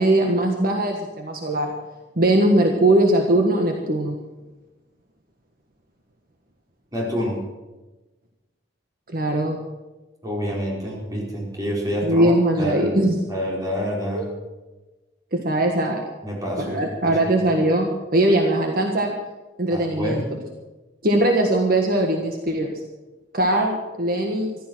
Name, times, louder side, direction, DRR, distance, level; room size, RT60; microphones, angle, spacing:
voice 1, 0.0-1.7 2.2-4.2 9.1-9.6 12.0-13.2 14.1-14.3 15.3-16.0 16.6-19.1 19.6-20.2 21.0-22.7 23.3-24.5, right 1 dB, 55° right, 2 dB, 1.5 m, -20 dB
voice 2, 6.9-7.4 10.2-12.9 13.3-14.3 16.2-17.2 19.7-20.2, equal, 20° right, -3 dB, 4.5 m, -27 dB
15.0 x 12.5 x 6.2 m, 1.2 s
head